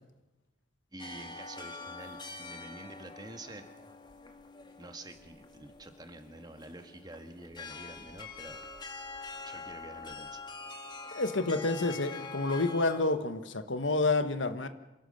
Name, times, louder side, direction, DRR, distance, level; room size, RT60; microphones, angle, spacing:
voice 1, 0.9-3.7 4.8-8.6 9.4-10.4, right 2 dB, 20° right, 6 dB, 1.8 m, -48 dB
sound 1, 1.0-13.0, left 3 dB, 25° left, 1.9 m, -45 dB
voice 2, 11.1-14.7, left 3 dB, 75° left, 9 dB, 1.4 m, -29 dB
27.0 x 17.5 x 6.6 m, 1.0 s
head